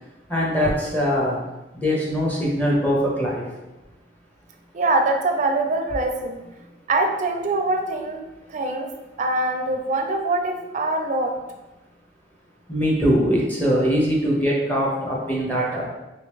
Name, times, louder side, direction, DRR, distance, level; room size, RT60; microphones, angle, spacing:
voice 1, 0.3-1.4 1.7-3.4 12.7-15.8, equal, 10° left, -5 dB, 0.8 m, -22 dB
voice 2, 4.7-6.4 6.9-8.2 8.5-8.9 9.2-11.3, right 2 dB, 45° right, 3 dB, 0.4 m, -23 dB
3.1 x 2.9 x 3.5 m, 1.0 s
head